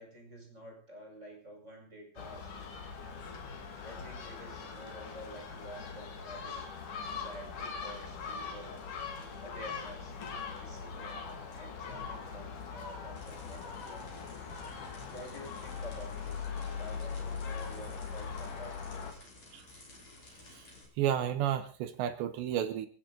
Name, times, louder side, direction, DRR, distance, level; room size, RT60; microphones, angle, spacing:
voice 1, 0.0-2.5 3.7-6.6 6.9-8.8 9.3-10.1 10.5-14.3 15.1-19.2, equal, 15° right, 1 dB, 5.0 m, -49 dB
Gull seagull, 2.2-19.1, left 5 dB, 50° left, 3.0 m, -41 dB
sound 1, 13.1-20.8, left 2 dB, 30° left, 5.9 m, -55 dB
voice 2, 21.0-22.9, right 10 dB, 70° right, 9 dB, 2.9 m, -32 dB
28.5 x 9.5 x 3.8 m, 0.37 s
omnidirectional pair, 6.0 m